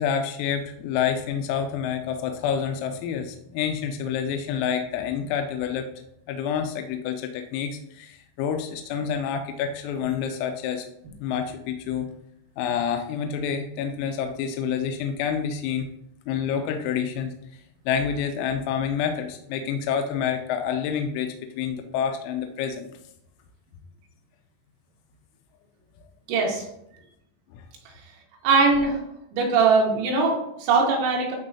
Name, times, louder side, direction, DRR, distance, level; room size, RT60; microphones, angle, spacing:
voice 1, 0.0-5.9 6.3-10.8 11.2-12.1 12.6-15.9 16.3-22.9 27.5-27.6, left 7 dB, 90° left, 6 dB, 3.3 m, -28 dB
voice 2, 26.3-26.7 28.4-29.0 29.3-31.4, right 4 dB, 85° right, -1 dB, 4.3 m, -21 dB
12.0 x 4.4 x 2.7 m, 0.79 s
omnidirectional pair, 5.9 m